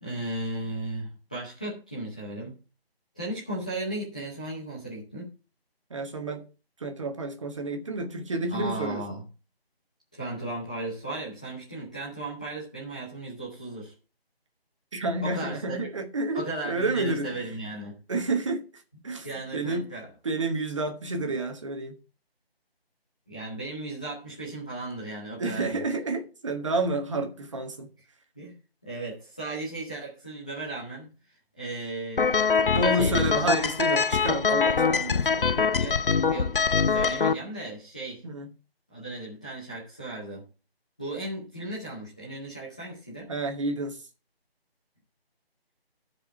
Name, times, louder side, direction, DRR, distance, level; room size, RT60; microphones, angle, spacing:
voice 1, 0.0-2.5 3.1-5.3 8.5-9.3 10.1-13.9 15.2-15.7 16.3-18.0 19.2-20.1 23.3-25.8 28.4-28.5 28.8-31.1 31.6-32.4 33.0-33.2 35.7-36.0 36.3-36.5 36.8-38.2 38.9-40.4 41.0-43.3, right 2 dB, 5° left, 0.7 m, -36 dB
voice 2, 5.9-6.4 6.8-9.2 14.9-17.4 18.1-19.3 19.5-19.9 20.2-22.0 25.4-27.9 32.7-35.5 38.2-38.5 43.3-44.0, right 2 dB, 30° right, 1.4 m, -30 dB
sound 1, 32.2-37.3, left 5 dB, 60° left, 0.6 m, -23 dB
13.5 x 4.9 x 5.7 m
figure-of-eight pair, 165°, 31 cm